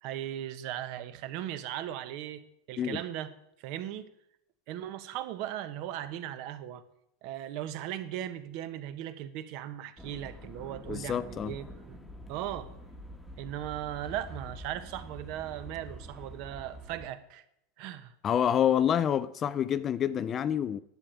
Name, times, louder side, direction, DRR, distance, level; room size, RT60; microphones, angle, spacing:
voice 1, 0.0-3.3 3.6-4.0 4.7-6.8 7.2-12.0 12.3-12.7 13.4-17.4 17.8-18.1, right 12 dB, 45° right, 1.1 m, -38 dB
sound 1, 10.0-17.1, equal, 5° left, 1.3 m, -46 dB
voice 2, 10.9-11.6 18.2-20.8, left 9 dB, 20° left, 0.4 m, -27 dB
11.0 x 8.5 x 8.8 m
supercardioid pair, 165°, 0 cm